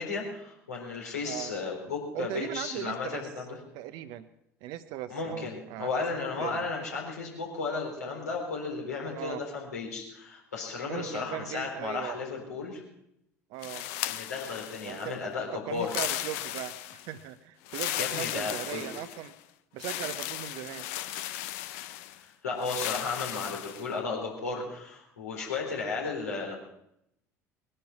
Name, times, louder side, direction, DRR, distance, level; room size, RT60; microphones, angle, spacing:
voice 1, 0.0-3.6 5.1-12.8 14.1-15.9 18.0-18.9 22.2-26.5, left 4 dB, 80° left, -1 dB, 4.0 m, -34 dB
voice 2, 2.1-3.3 3.7-4.3 4.6-6.1 6.4-6.6 9.1-9.4 10.8-12.2 13.5-13.9 14.8-15.1 15.7-16.7 17.1-19.3 19.7-20.9, right 13 dB, 60° right, 11 dB, 0.8 m, -38 dB
sound 1, 13.6-15.1 15.8-17.1 17.7-19.3 19.8-22.2 22.6-23.9, left 14 dB, 65° left, 0.7 m, -36 dB
21.0 x 11.0 x 5.9 m, 0.82 s
figure-of-eight pair, 65°, 9 cm